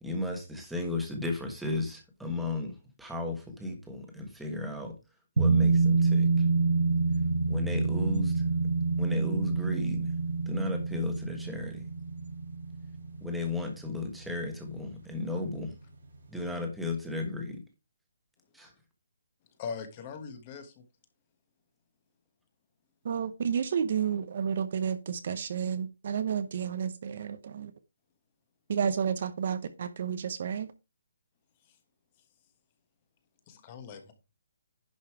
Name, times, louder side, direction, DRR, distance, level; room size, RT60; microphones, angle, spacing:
voice 1, 0.0-4.9 5.4-6.4 7.5-8.4 9.0-10.1 10.5-11.8 13.2-15.7 16.3-17.6 18.5-18.7, left 2 dB, ahead, 1.3 m, -34 dB
sound 1, 5.4-14.5 14.8-14.9, right 4 dB, 60° right, 1.6 m, -27 dB
voice 2, 19.6-20.8 33.5-34.1, left 6 dB, 20° left, 1.2 m, -40 dB
voice 3, 23.0-27.7 28.7-30.7, right 7 dB, 35° right, 0.7 m, -31 dB
11.0 x 5.4 x 4.7 m
hypercardioid pair, 180°, 0 cm